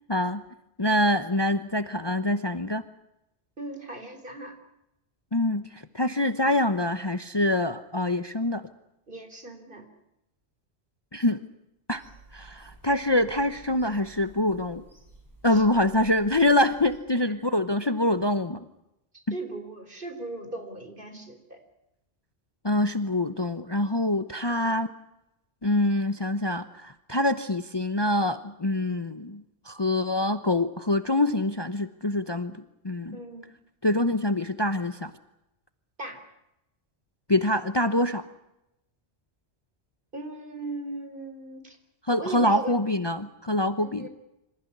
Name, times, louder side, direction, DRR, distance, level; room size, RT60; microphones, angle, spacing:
voice 1, 0.1-0.4 0.8-2.8 5.3-8.6 11.1-11.4 11.9-12.0 12.3-14.8 15.4-18.6 22.6-24.9 25.6-33.2 33.8-35.1 37.3-38.2 42.1-44.1, left 1 dB, 25° left, 11 dB, 0.9 m, -25 dB
voice 2, 3.6-4.6 9.1-9.8 15.5-15.7 17.1-17.4 19.3-21.6 24.5-24.9 33.1-33.5 36.0-36.2 40.1-41.8 42.2-42.8 43.8-44.1, right 2 dB, 50° right, 6 dB, 4.3 m, -38 dB
Bird vocalization bird call bird song / Telephone, 11.9-17.0, right 1 dB, 15° right, 7.1 m, -52 dB
26.5 x 15.0 x 9.9 m, 0.87 s
omnidirectional pair, 1.1 m